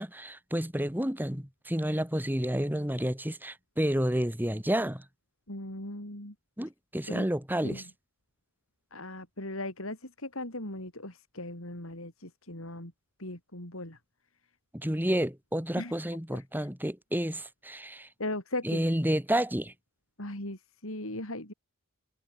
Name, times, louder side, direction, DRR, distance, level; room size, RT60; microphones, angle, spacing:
voice 1, 0.0-5.0 6.6-7.8 14.7-18.1 18.6-19.7, equal, 10° right, 3.3 m, -30 dB
voice 2, 5.5-6.3 7.1-7.3 7.6-7.8 8.9-12.9 13.2-14.0 15.8-15.9 16.3-16.4 18.2-18.8 20.2-21.5, left 1 dB, 65° left, 6.5 m, -38 dB
head